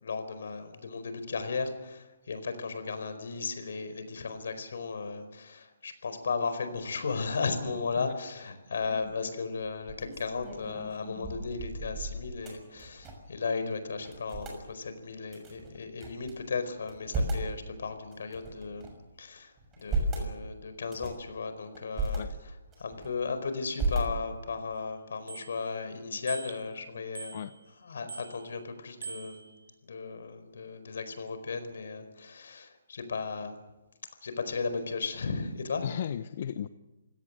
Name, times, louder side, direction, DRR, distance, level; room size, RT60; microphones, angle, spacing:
voice 1, 0.0-18.9 19.2-22.2 22.8-27.4 27.8-29.4 29.8-33.6 34.2-35.8, left 4 dB, 70° left, 10 dB, 4.6 m, -35 dB
sound 1, 8.8-9.1 9.6-13.4 13.6-13.7 14.0-14.6 15.3-16.3 16.8-17.5 18.1-19.1 19.6-20.3 20.8-21.3 21.7-22.2 22.7-23.3 23.8-24.5, right 2 dB, 15° right, 6.3 m, -35 dB
Bicycle bell, 24.7-24.8 25.3-25.9 26.3-26.8 27.2-27.8 28.1-28.6 29.0-29.7, right 5 dB, 80° right, 4.6 m, -44 dB
voice 2, 35.8-36.7, left 9 dB, 50° left, 12 dB, 0.8 m, -35 dB
27.5 x 17.5 x 7.7 m, 1.1 s
hypercardioid pair, 165°, 0 cm